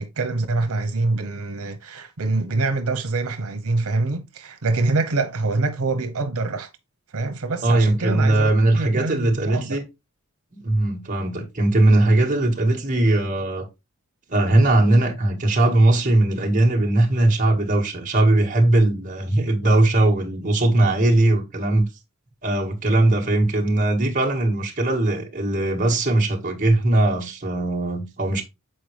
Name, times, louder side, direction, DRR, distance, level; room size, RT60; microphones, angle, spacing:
voice 1, 0.0-6.7 7.1-9.8, right 3 dB, 90° right, 0.9 m, -25 dB
voice 2, 7.6-9.8 10.5-13.7 14.3-21.8 22.4-28.4, right 2 dB, 35° right, 1.7 m, -19 dB
7.6 x 4.5 x 3.3 m
head